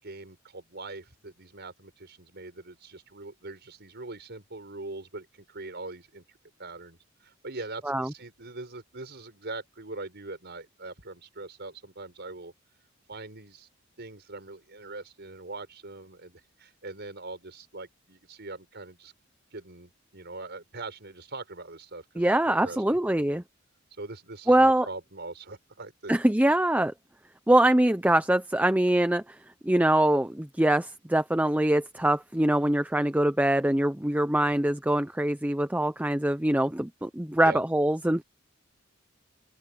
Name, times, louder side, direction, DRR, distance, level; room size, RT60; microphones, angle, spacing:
voice 1, 0.0-6.2 6.6-12.5 13.1-13.7 14.0-19.1 19.5-23.4 24.0-26.2 37.4-37.6, right 2 dB, 55° right, 5.4 m, -42 dB
voice 2, 22.2-23.4 24.5-24.9 26.1-26.9 27.5-29.4 29.6-38.2, right 1 dB, 10° right, 0.7 m, -23 dB
open air
head